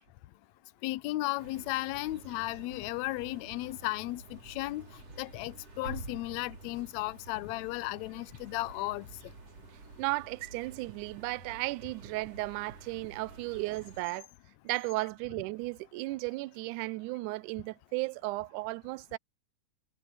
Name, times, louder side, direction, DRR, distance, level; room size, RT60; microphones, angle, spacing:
voice 1, 0.8-4.9 5.2-9.1, left 19 dB, 80° left, 1.7 m, -35 dB
sound 1, 1.4-14.0, right 3 dB, 50° right, 4.6 m, -49 dB
voice 2, 10.0-14.3 14.6-19.2, right 22 dB, 80° right, 2.0 m, -35 dB
omnidirectional pair, 3.7 m